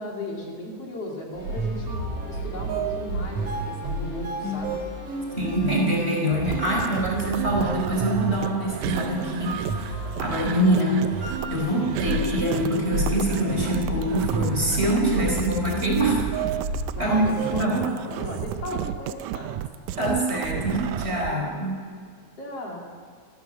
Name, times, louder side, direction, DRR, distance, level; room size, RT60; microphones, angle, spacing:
voice 1, 0.0-4.8 15.7-15.8 16.9-19.5 22.4-22.8, left 1 dB, 55° left, -1 dB, 3.8 m, -36 dB
sound 1, 1.3-16.2, equal, 50° right, 8.3 m, -43 dB
sound 2, 1.4-17.5, right 2 dB, 70° right, 4.4 m, -31 dB
voice 2, 5.4-16.3 17.0-17.2 17.5-17.9 20.0-21.8, right 1 dB, 20° right, -1 dB, 4.7 m, -25 dB
sound 3, 6.4-21.3, right 12 dB, 90° right, 2.1 m, -33 dB
26.0 x 14.5 x 7.0 m, 2.1 s
omnidirectional pair, 3.3 m